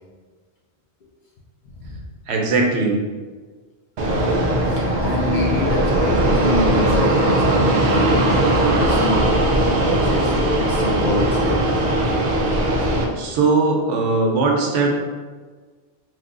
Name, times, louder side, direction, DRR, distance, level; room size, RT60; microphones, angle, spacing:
voice 1, 2.3-3.0 13.2-14.9, right 3 dB, 80° right, 0 dB, 0.9 m, -19 dB
Fixed-wing aircraft airplane, 4.0-13.0, right 1 dB, 55° right, 0.5 m, -19 dB
voice 2, 4.7-8.4 8.8-9.3 9.6-11.6, left 1 dB, 55° left, -3 dB, 0.7 m, -26 dB
3.2 x 2.0 x 3.6 m, 1.4 s
omnidirectional pair, 1.1 m